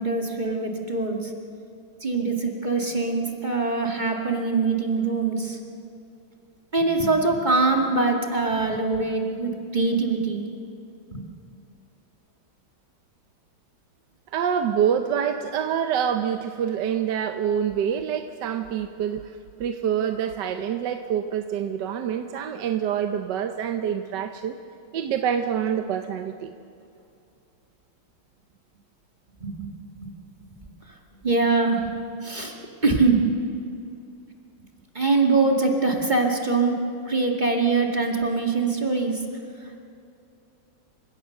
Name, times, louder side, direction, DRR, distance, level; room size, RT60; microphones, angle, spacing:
voice 1, 0.0-1.3 2.0-5.6 6.7-10.5 11.1-11.2 29.4-29.7 30.6-30.7 31.2-31.9 32.2-32.6 32.8-33.3 34.9-36.8 37.1-39.2, right 3 dB, 20° right, 1 dB, 2.0 m, -23 dB
voice 2, 14.3-24.6 24.9-26.5, right 8 dB, 65° right, 7 dB, 1.3 m, -26 dB
28.5 x 16.5 x 6.5 m, 2.5 s
omnidirectional pair, 2.3 m